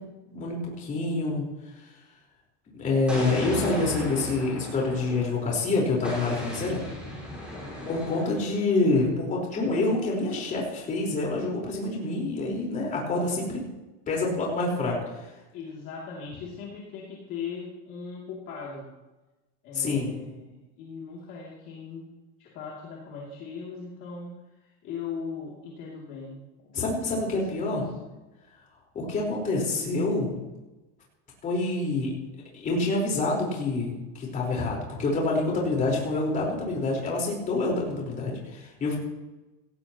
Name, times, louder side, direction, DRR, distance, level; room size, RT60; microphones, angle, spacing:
voice 1, 0.3-1.5 2.8-6.8 7.8-13.6 14.1-15.3 19.7-20.1 26.7-27.9 28.9-30.3 31.4-32.1 32.5-39.0, left 2 dB, 20° left, -2 dB, 4.4 m, -27 dB
Explosion, 3.1-5.5 6.0-8.6, left 1 dB, 5° right, 4.8 m, -36 dB
voice 2, 7.5-7.9 15.5-18.9 19.6-22.0 22.4-27.0 27.5-27.8, left 5 dB, 35° left, -4 dB, 2.8 m, -39 dB
17.5 x 17.0 x 3.0 m, 1.1 s
cardioid pair, 175°, 35 cm